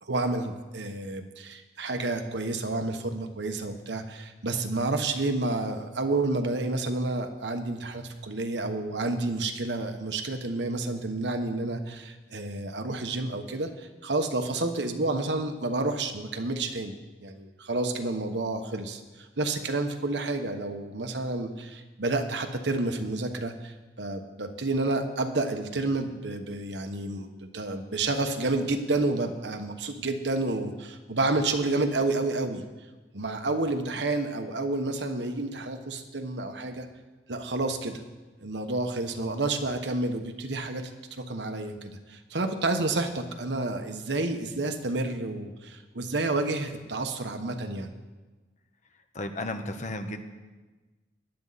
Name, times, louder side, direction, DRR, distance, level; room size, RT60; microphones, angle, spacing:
voice 1, 0.0-16.9 17.2-32.6 33.1-36.9 37.3-38.0 38.4-47.9, right 2 dB, 75° right, 6 dB, 1.2 m, -30 dB
voice 2, 49.1-50.2, left 1 dB, 45° left, 7 dB, 1.1 m, -33 dB
18.5 x 11.0 x 4.2 m, 1.2 s
head